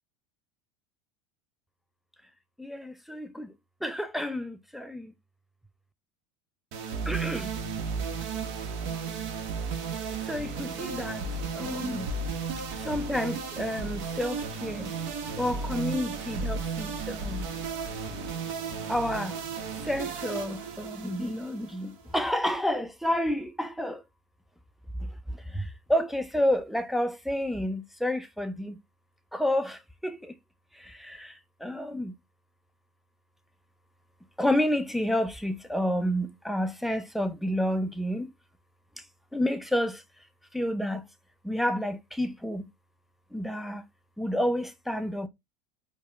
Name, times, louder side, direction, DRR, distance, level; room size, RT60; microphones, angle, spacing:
voice 1, 2.6-3.5 3.8-5.1 7.1-7.5 10.3-11.2 11.6-12.1 12.9-14.9 15.4-17.4 18.9-19.3 19.9-24.0 25.9-28.7 29.3-29.8 31.6-32.1 34.4-38.3 39.3-40.0 40.5-41.0 41.5-42.6 43.3-43.8 44.2-45.3, left 1 dB, ahead, 0.4 m, -29 dB
sound 1, 6.7-22.1, right 5 dB, 60° right, 1.1 m, -34 dB
4.5 x 2.2 x 2.3 m
supercardioid pair, 105°, 17 cm